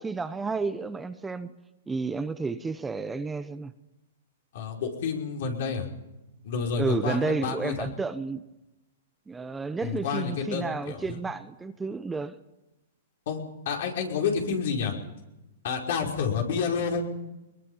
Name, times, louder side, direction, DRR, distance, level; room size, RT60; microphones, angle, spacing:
voice 1, 0.0-1.5 1.9-3.7 6.8-8.4 9.3-12.3, right 4 dB, 10° right, 11 dB, 1.0 m, -31 dB
voice 2, 4.5-5.9 6.4-7.9 9.8-11.0 13.2-14.9 15.6-17.0, left 6 dB, 65° left, 1 dB, 5.3 m, -29 dB
22.0 x 21.5 x 5.7 m, 0.97 s
hypercardioid pair, 135°, 0 cm